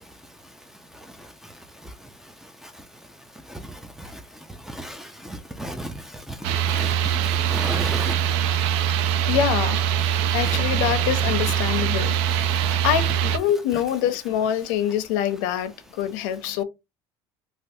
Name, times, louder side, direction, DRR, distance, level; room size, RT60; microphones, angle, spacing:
voice 1, 3.5-4.2 4.6-8.2 10.4-10.6 11.6-11.7 12.6-12.7, right 1 dB, 5° right, 0.4 m, -35 dB
sound 1, 6.4-13.4, right 9 dB, 70° right, 0.4 m, -23 dB
voice 2, 9.3-9.8 10.3-12.1 12.8-16.6, left 10 dB, 90° left, 0.6 m, -25 dB
3.3 x 2.4 x 2.6 m
cardioid pair, 145°, 11 cm